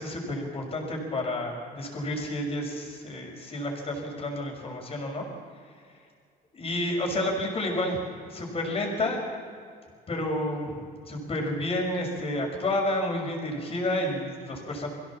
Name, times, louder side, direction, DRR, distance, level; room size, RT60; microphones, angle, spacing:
voice 1, 0.0-5.3 6.5-9.2 10.1-14.9, left 1 dB, 35° left, 1 dB, 6.1 m, -30 dB
22.5 x 16.5 x 7.3 m, 2.2 s
cardioid pair, 110°, 17 cm